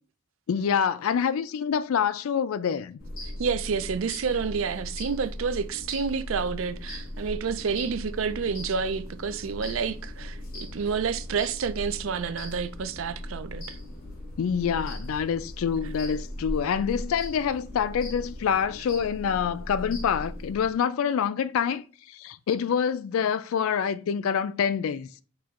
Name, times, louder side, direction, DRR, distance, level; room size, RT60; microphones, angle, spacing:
voice 1, 0.5-3.0 14.4-25.1, left 7 dB, 75° left, 0.3 m, -26 dB
sound 1, 3.0-20.8, left 1 dB, 40° left, 1.0 m, -38 dB
voice 2, 3.4-13.8, right 6 dB, 65° right, 0.4 m, -29 dB
6.0 x 3.0 x 2.4 m
head